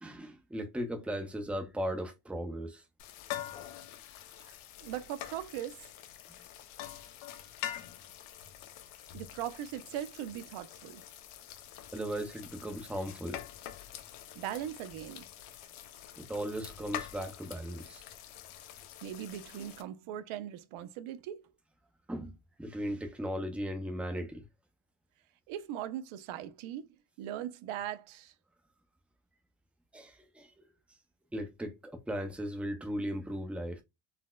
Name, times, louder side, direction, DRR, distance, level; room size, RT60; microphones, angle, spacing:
voice 1, 0.0-2.8 11.9-13.4 16.2-18.0 22.1-24.4 29.9-30.5 31.3-33.8, equal, 5° right, 0.6 m, -37 dB
sound 1, 3.0-19.8, left 11 dB, 80° left, 0.7 m, -46 dB
voice 2, 4.4-5.9 9.1-11.0 14.4-15.3 19.0-21.5 25.5-26.9 27.2-28.3, right 11 dB, 85° right, 0.6 m, -40 dB
4.0 x 2.1 x 2.2 m
cardioid pair, 120°, 47 cm